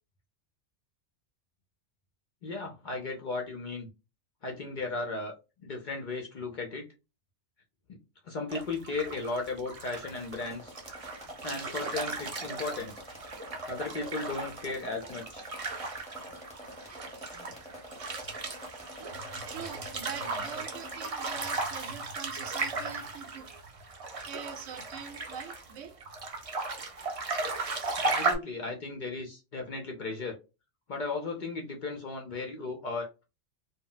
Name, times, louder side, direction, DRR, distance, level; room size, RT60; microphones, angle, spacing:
voice 1, 2.4-3.9 4.4-5.3 5.6-6.9 7.9-8.0 8.2-10.7 11.4-12.9 13.7-15.5 17.3-17.5 28.0-30.4 30.9-33.2, left 3 dB, 55° left, 0.5 m, -36 dB
sound 1, 8.5-28.4, right 3 dB, 45° right, 0.4 m, -36 dB
sound 2, 9.8-21.1, equal, 5° left, 0.7 m, -47 dB
voice 2, 19.0-23.6 24.2-26.0, right 7 dB, 85° right, 0.9 m, -43 dB
2.1 x 2.0 x 3.7 m
omnidirectional pair, 1.2 m